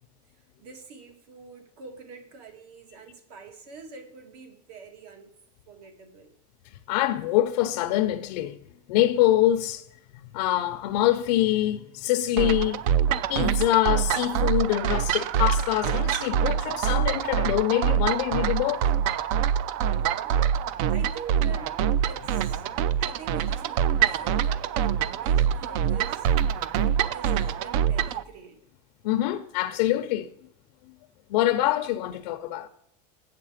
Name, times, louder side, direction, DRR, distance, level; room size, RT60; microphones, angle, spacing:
voice 1, 0.6-5.3 5.7-6.3 19.8-20.4 20.9-22.7 23.0-26.3 27.0-28.6, right 5 dB, 75° right, 1.8 m, -45 dB
voice 2, 6.9-8.6 8.9-9.8 10.2-12.9 13.3-18.9 29.0-30.3 31.3-32.7, left 14 dB, 85° left, 0.7 m, -24 dB
sound 1, 12.4-28.2, right 9 dB, 55° right, 0.4 m, -25 dB
8.2 x 6.7 x 5.0 m
cardioid pair, 175°, 20 cm